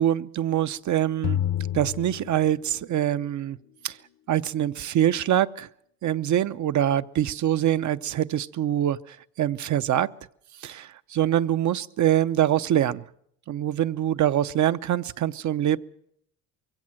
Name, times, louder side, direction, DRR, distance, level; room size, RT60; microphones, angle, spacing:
voice 1, 0.0-1.4 1.7-3.6 3.8-4.0 4.3-5.7 6.0-10.1 10.6-13.0 13.5-15.8, right 11 dB, 50° right, 13 dB, 0.8 m, -24 dB
sound 1, 1.2-3.0, left 11 dB, 45° left, 0.8 m, -29 dB
22.5 x 16.5 x 7.7 m, 0.70 s
supercardioid pair, 85°, 38 cm